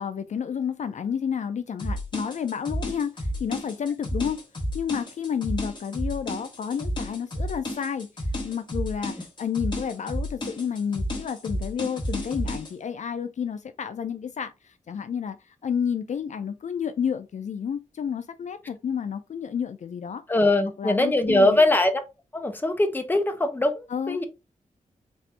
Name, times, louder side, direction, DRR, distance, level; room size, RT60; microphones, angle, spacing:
voice 1, 0.0-4.4 4.7-8.1 8.4-15.4 15.6-20.2 20.8-21.6 23.9-24.2, left 7 dB, 60° left, 0.4 m, -30 dB
sound 1, 1.8-12.7, equal, 35° left, 1.2 m, -31 dB
voice 2, 20.3-22.0 22.3-24.2, left 1 dB, 15° left, 0.6 m, -22 dB
4.2 x 2.5 x 3.3 m
wide cardioid pair, 140°, 14 cm